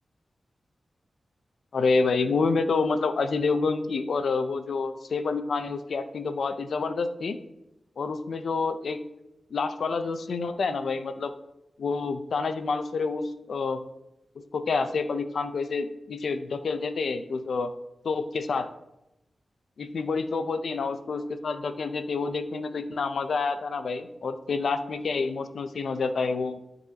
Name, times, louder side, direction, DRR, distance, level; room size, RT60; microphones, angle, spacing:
voice 1, 1.7-7.4 8.0-9.0 9.5-11.3 11.8-13.8 14.5-17.7 18.0-18.7 19.8-26.6, left 4 dB, 80° left, 9 dB, 0.5 m, -28 dB
12.0 x 3.9 x 2.8 m, 0.90 s
cardioid pair, 70°, 0 cm